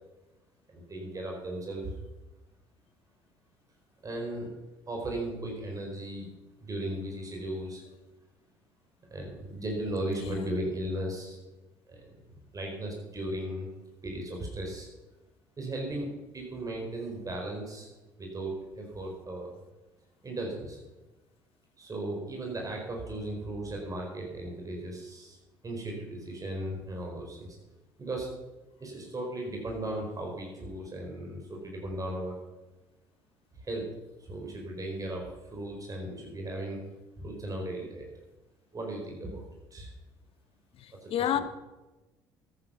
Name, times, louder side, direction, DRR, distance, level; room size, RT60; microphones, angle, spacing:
voice 1, 0.7-2.0 4.0-4.5 4.9-6.3 6.6-7.8 9.1-11.4 11.9-12.2 12.5-13.7 14.0-14.9 15.6-16.1 16.3-17.9 18.2-19.5 20.2-20.8 21.8-25.4 25.6-27.6 28.0-28.3 28.8-32.4 33.6-33.9 34.2-36.8 37.2-38.1 38.7-39.4 39.7-39.9 40.9-41.1, right 1 dB, 30° right, 4.6 m, -36 dB
voice 2, 10.1-10.5 40.7-41.4, left 10 dB, 60° left, 1.2 m, -31 dB
13.5 x 9.9 x 5.8 m
hypercardioid pair, 65°, 11 cm